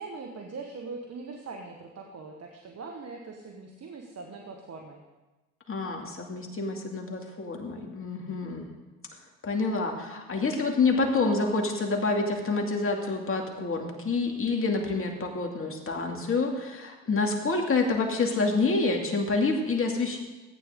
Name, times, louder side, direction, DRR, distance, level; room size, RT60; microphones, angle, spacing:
voice 1, 0.0-5.0, right 4 dB, 40° right, 2 dB, 1.4 m, -41 dB
voice 2, 5.7-8.7 9.4-20.2, left 3 dB, 35° left, 2 dB, 2.4 m, -27 dB
14.5 x 9.1 x 3.7 m, 1.1 s
hypercardioid pair, 65°, 39 cm